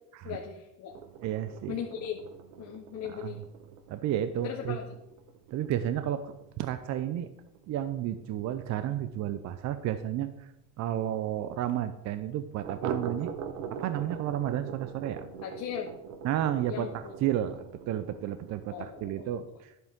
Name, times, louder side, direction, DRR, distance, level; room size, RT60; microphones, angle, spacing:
voice 1, 0.2-0.9 1.7-2.2 2.6-3.4 4.4-5.0 15.4-15.9 16.7-17.2 18.7-19.3, left 8 dB, 40° left, 2 dB, 1.0 m, -38 dB
sound 1, 0.9-10.2 10.5-10.6 10.9-11.0 11.4-11.5 12.6-19.4, right 7 dB, 85° right, 1.0 m, -43 dB
voice 2, 1.2-1.8 3.1-3.3 3.9-4.8 5.5-7.3 7.7-10.5 10.8-13.3 13.8-15.2 16.2-19.7, right 11 dB, 40° right, 11 dB, 0.5 m, -32 dB
11.0 x 7.5 x 3.6 m, 0.87 s
supercardioid pair, 125°, 43 cm